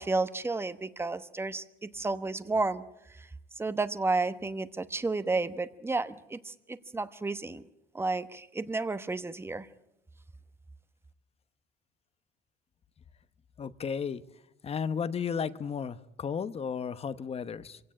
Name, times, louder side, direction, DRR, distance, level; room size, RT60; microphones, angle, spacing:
voice 1, 0.0-2.8 3.6-7.6 7.9-9.7, right 3 dB, 15° right, 12 dB, 1.1 m, -32 dB
voice 2, 13.6-14.2 14.6-17.8, left 6 dB, 35° left, 14 dB, 0.9 m, -33 dB
25.0 x 17.0 x 8.7 m, 0.88 s
cardioid pair, 110°, 17 cm